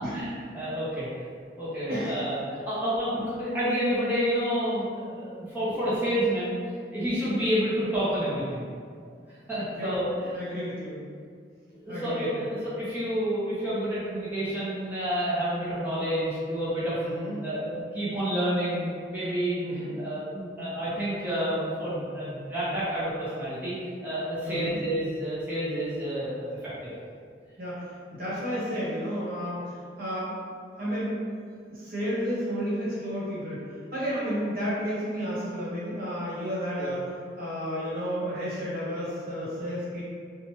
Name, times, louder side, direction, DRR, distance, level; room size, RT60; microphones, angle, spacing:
voice 1, 0.1-1.1 1.6-6.5 6.9-8.7 9.5-10.0 11.7-17.0 17.4-23.8 24.0-26.6 26.8-26.9 36.8-36.9, equal, 10° right, -11 dB, 0.6 m, -29 dB
voice 2, 1.8-2.3 9.7-10.0 10.3-11.0 11.9-12.3 17.0-17.4 19.6-20.0 24.4-24.8 27.6-30.3 30.8-31.2 31.7-33.6 33.9-40.0, equal, 55° right, -8 dB, 0.9 m, -32 dB
3.1 x 2.1 x 3.0 m, 2.1 s
head